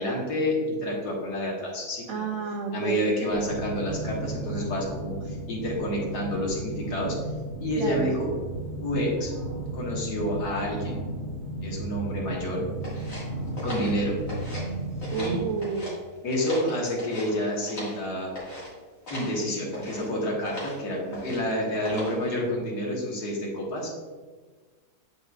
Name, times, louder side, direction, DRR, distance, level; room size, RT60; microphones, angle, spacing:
voice 1, 0.0-2.3 2.7-7.2 7.6-8.3 8.8-9.3 9.7-11.0 11.6-12.6 13.6-14.2 15.2-15.4 16.2-18.3 19.1-23.9, equal, 80° left, -2 dB, 1.9 m, -29 dB
voice 2, 2.1-3.0 7.8-8.1 15.1-16.0, right 6 dB, 75° right, 1 dB, 0.7 m, -30 dB
sound 1, 3.3-15.4, right 1 dB, 35° left, 1.3 m, -34 dB
sound 2, 12.8-14.7 15.0-15.9 16.3-18.0 18.3-18.7 19.1-19.4 19.7-20.1 20.4-20.8 21.1-21.5 21.8-22.3, left 1 dB, 55° left, 2.3 m, -39 dB
7.8 x 5.3 x 2.3 m, 1.4 s
omnidirectional pair, 1.7 m